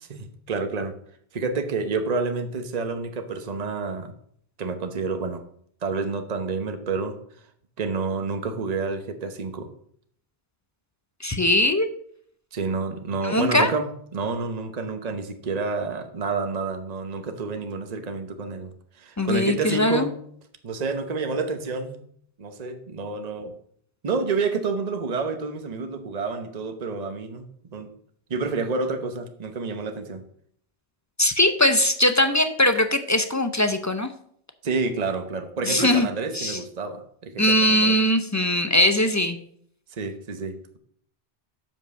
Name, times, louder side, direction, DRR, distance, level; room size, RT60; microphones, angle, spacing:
voice 1, 0.1-0.9 1.3-4.1 4.6-5.4 5.8-7.2 7.8-9.7 12.5-18.7 19.0-20.1 20.6-22.0 22.4-23.5 24.0-27.5 27.7-27.9 28.3-30.2 34.6-37.9 40.0-40.8, right 4 dB, 40° right, 7 dB, 1.0 m, -29 dB
voice 2, 11.2-11.9 13.2-13.7 19.2-20.1 31.2-34.1 35.6-36.1 36.3-36.6 37.4-39.4, left 1 dB, 20° left, 8 dB, 0.5 m, -21 dB
7.4 x 5.5 x 6.5 m, 0.64 s
omnidirectional pair, 1.1 m